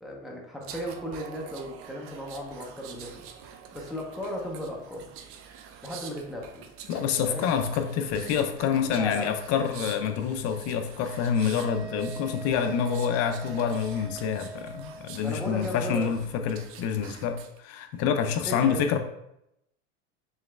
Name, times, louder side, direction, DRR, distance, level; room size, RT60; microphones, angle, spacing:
voice 1, 0.0-3.2 3.7-5.1 5.8-6.6 7.2-7.5 8.8-9.4 15.2-16.1 18.1-18.9, equal, ahead, -2 dB, 0.7 m, -36 dB
sound 1, 0.6-17.6 18.0-18.2, right 7 dB, 40° right, 0.4 m, -46 dB
voice 2, 6.9-19.0, left 7 dB, 40° left, 7 dB, 0.5 m, -27 dB
sound 2, 11.6-15.2, right 4 dB, 70° right, 1.2 m, -43 dB
3.4 x 3.1 x 3.3 m, 0.82 s
supercardioid pair, 110°, 37 cm